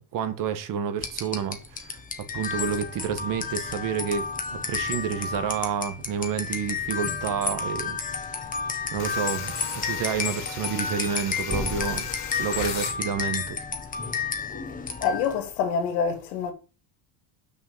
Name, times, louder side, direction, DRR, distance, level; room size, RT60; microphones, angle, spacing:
voice 1, 0.0-2.0 2.3-8.5 8.9-9.5 9.8-12.1 12.4-13.6, right 7 dB, 45° right, 1.5 m, -29 dB
sound 1, 1.0-15.4, left 5 dB, 15° left, 1.4 m, -31 dB
sound 2, 9.0-13.0, left 8 dB, 60° left, 3.1 m, -37 dB
voice 2, 15.0-16.5, left 6 dB, 85° left, 2.8 m, -26 dB
6.4 x 6.0 x 7.3 m
cardioid pair, 145°, 46 cm